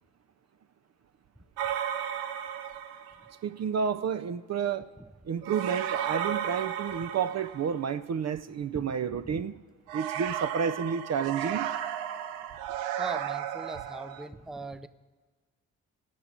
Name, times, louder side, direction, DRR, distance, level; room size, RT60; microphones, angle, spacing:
sound 1, 1.6-3.3 5.4-8.0 9.9-14.3, right 10 dB, 90° right, 0.6 m, -34 dB
voice 1, 3.4-4.9 5.2-9.5 9.9-11.7, right 7 dB, 45° right, 0.6 m, -30 dB
voice 2, 8.7-9.4 12.9-14.9, right 2 dB, ahead, 0.6 m, -40 dB
15.0 x 5.9 x 8.7 m
hypercardioid pair, 40°, 37 cm